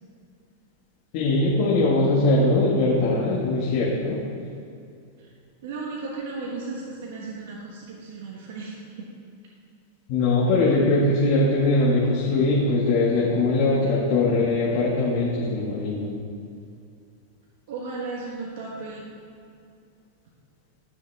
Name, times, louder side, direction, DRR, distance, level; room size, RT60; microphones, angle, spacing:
voice 1, 1.1-4.2 10.1-16.1, left 2 dB, 50° left, -6 dB, 1.8 m, -21 dB
voice 2, 5.6-8.8 17.7-19.0, right 3 dB, 70° right, -3 dB, 1.3 m, -35 dB
14.0 x 6.3 x 3.5 m, 2.4 s
supercardioid pair, 145°, 0 cm